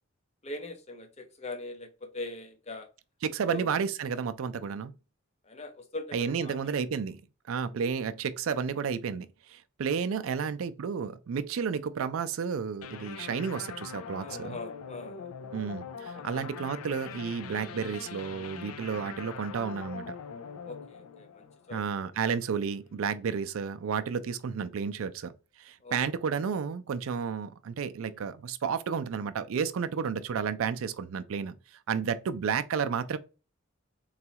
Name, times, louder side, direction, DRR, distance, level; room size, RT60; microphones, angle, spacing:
voice 1, 0.4-2.9 3.5-3.7 5.4-6.6 7.7-7.8 10.4-10.5 14.2-15.3 16.1-16.5 18.9-19.1 20.6-21.8 25.8-26.0 28.0-28.1, left 2 dB, 30° left, 0.6 m, -41 dB
voice 2, 3.2-4.9 6.1-7.2 7.5-14.6 15.5-20.2 21.7-31.6 31.9-33.2, right 6 dB, 70° right, 0.4 m, -32 dB
sound 1, 12.8-22.2, left 6 dB, 85° left, 0.4 m, -43 dB
3.9 x 2.3 x 2.8 m
head